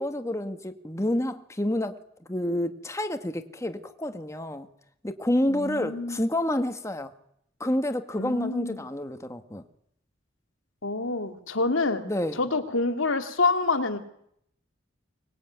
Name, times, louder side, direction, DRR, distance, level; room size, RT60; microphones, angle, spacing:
voice 1, 0.0-2.0 2.3-4.7 5.0-7.1 7.6-9.6 12.0-12.4, left 1 dB, 15° left, 1.7 m, -29 dB
voice 2, 5.5-6.2 8.2-8.8 10.8-12.0 12.3-14.0, left 3 dB, 85° left, 2.7 m, -27 dB
24.5 x 20.5 x 9.5 m
head